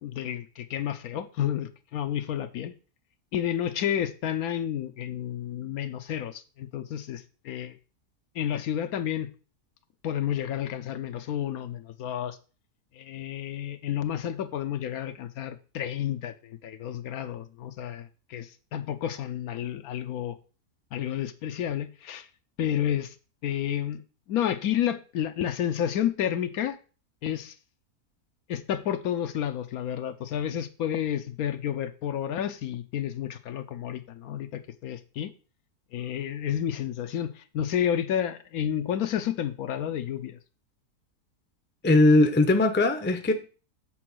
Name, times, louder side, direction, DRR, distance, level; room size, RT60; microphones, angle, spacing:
voice 1, 0.0-2.7 3.3-7.7 8.3-9.3 10.0-12.4 13.0-20.3 20.9-22.3 22.6-23.1 23.4-24.0 24.3-26.8 27.2-27.5 28.5-35.3 35.9-40.4, left 10 dB, 75° left, 1.1 m, -30 dB
voice 2, 41.8-43.3, left 2 dB, 15° left, 0.5 m, -20 dB
7.7 x 4.0 x 6.1 m
omnidirectional pair, 1.6 m